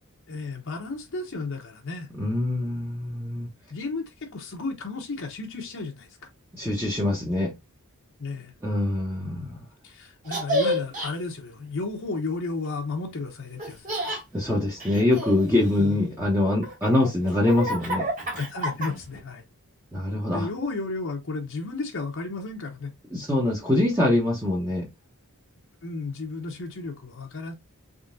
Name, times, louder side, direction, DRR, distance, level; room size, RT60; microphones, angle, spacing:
voice 1, 0.3-2.1 3.7-6.3 8.2-8.5 9.8-14.0 15.8-16.0 18.3-19.4 20.3-22.9 25.8-27.5, left 3 dB, 60° left, 0.9 m, -33 dB
voice 2, 2.2-3.5 6.5-7.5 8.6-9.6 14.3-18.1 19.9-20.5 23.1-24.9, left 1 dB, 10° right, 1.0 m, -24 dB
Laughter, 10.3-11.1 13.6-14.2 14.8-16.1 16.6-19.2, equal, 35° right, 1.9 m, -30 dB
3.7 x 3.5 x 2.5 m
head